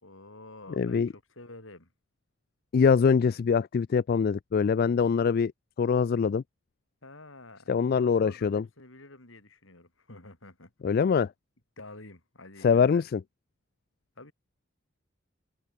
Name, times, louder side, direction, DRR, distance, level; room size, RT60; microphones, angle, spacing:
voice 1, 0.0-1.9 7.0-10.7 11.8-13.0 14.2-14.3, left 2 dB, 70° left, 5.0 m, -49 dB
voice 2, 0.8-1.1 2.7-5.5 5.8-6.4 7.7-8.6 10.8-11.3 12.6-13.2, left 6 dB, 45° left, 0.3 m, -23 dB
head